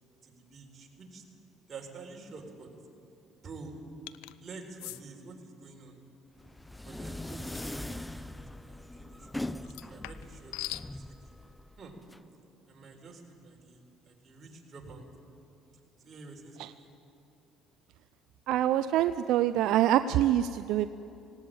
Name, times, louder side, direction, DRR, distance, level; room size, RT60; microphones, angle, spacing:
voice 1, 0.2-1.2 1.7-2.7 3.4-3.8 4.4-6.0 6.8-9.3 9.6-10.5 10.9-11.3 11.8-12.0 12.7-15.0 16.0-16.9, right 3 dB, 40° right, 1 dB, 4.2 m, -48 dB
sound 1, 4.1-4.3 4.8-5.0 7.5-7.8 9.6-10.9, left 18 dB, 90° left, 0.5 m, -41 dB
sound 2, 6.4-12.2, left 1 dB, 5° left, 0.5 m, -41 dB
voice 2, 18.5-21.0, right 12 dB, 75° right, 12 dB, 0.5 m, -25 dB
18.0 x 18.0 x 8.8 m, 2.7 s
cardioid pair, 95°, 0 cm